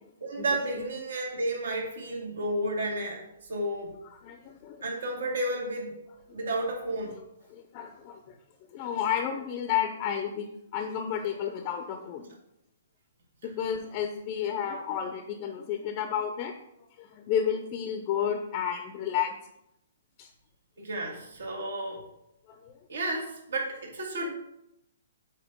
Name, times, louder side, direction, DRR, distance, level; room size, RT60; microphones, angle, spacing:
voice 1, 0.2-3.9 4.8-6.0 6.3-7.2 20.8-22.0 22.9-24.3, right 1 dB, 75° right, -1 dB, 2.2 m, -32 dB
voice 2, 4.2-4.8 6.3-6.4 7.5-8.4 8.7-12.3 13.4-16.5 17.0-19.4 20.2-20.3 22.5-22.7, left 8 dB, 30° left, 5 dB, 0.6 m, -31 dB
8.0 x 2.9 x 5.3 m, 0.82 s
hypercardioid pair, 160°, 0 cm